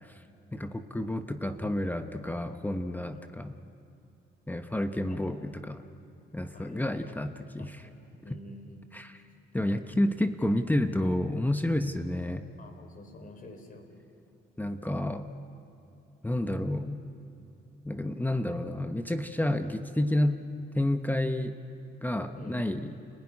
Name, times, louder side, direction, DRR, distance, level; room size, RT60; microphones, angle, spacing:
voice 1, 0.5-3.5 4.5-5.8 6.3-7.8 8.9-9.2 9.5-12.5 14.6-15.3 16.2-17.0 17.9-20.4 20.7-21.5 22.0-22.9, left 1 dB, 10° left, 7 dB, 1.0 m, -30 dB
voice 2, 6.5-7.2 7.6-8.8 9.6-9.9 12.6-13.9 22.3-22.6, left 1 dB, 45° left, 6 dB, 4.1 m, -48 dB
29.0 x 16.0 x 9.8 m, 2.8 s
cardioid pair, 90°, 20 cm